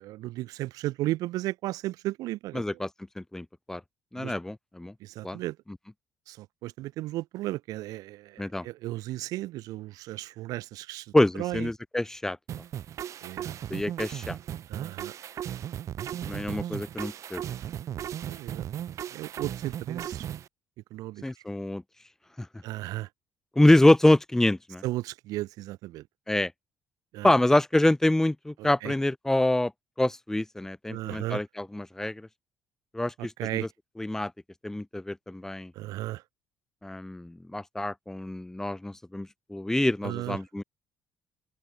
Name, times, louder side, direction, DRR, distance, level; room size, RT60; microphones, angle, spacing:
voice 1, 0.0-2.8 4.2-4.3 5.0-5.6 6.3-11.1 11.4-11.7 13.2-13.6 14.7-15.1 16.6-16.8 18.3-18.7 19.1-20.3 20.9-21.2 22.6-23.1 24.8-26.0 27.1-27.3 28.6-28.9 30.9-31.4 33.4-33.7 35.8-36.2 40.0-40.4, right 17 dB, 85° right, 2.5 m, -35 dB
voice 2, 2.5-2.9 3.2-3.8 4.1-4.9 5.2-5.4 8.4-8.7 11.1-12.4 13.7-14.4 16.2-17.4 21.2-21.8 22.4-22.5 23.6-24.8 26.3-26.5 27.2-29.7 30.0-32.3 32.9-33.7 34.0-34.3 34.6-35.7 36.8-40.6, left 1 dB, 5° left, 2.8 m, -26 dB
sound 1, 12.5-20.5, right 10 dB, 55° right, 7.7 m, -36 dB
cardioid pair, 115°, 6 cm